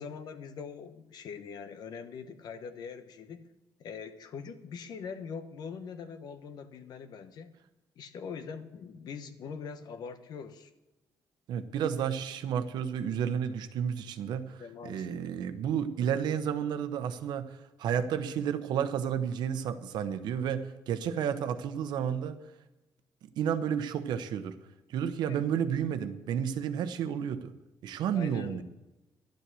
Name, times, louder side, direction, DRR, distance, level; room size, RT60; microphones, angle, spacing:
voice 1, 0.0-3.5 3.8-7.5 8.0-10.7 14.6-15.2 21.1-21.3 25.3-25.5 28.1-28.6, left 6 dB, 70° left, 10 dB, 1.1 m, -43 dB
voice 2, 11.5-22.4 23.4-24.6 24.9-27.5 27.8-28.6, right 8 dB, 85° right, 10 dB, 0.9 m, -31 dB
12.0 x 8.5 x 7.6 m, 1.0 s
cardioid pair, 130°, 7 cm